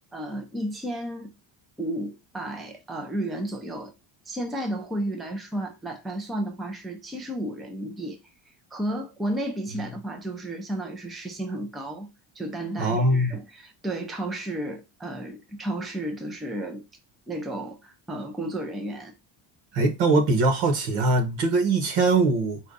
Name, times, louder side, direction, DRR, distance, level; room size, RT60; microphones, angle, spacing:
voice 1, 0.1-1.3 1.8-3.9 4.3-8.2 8.7-16.8 17.3-19.1, right 1 dB, ahead, 0.4 m, -33 dB
voice 2, 12.8-13.4 19.7-22.6, right 2 dB, 80° right, 1.5 m, -22 dB
4.8 x 2.4 x 3.9 m
cardioid pair, 160°, 48 cm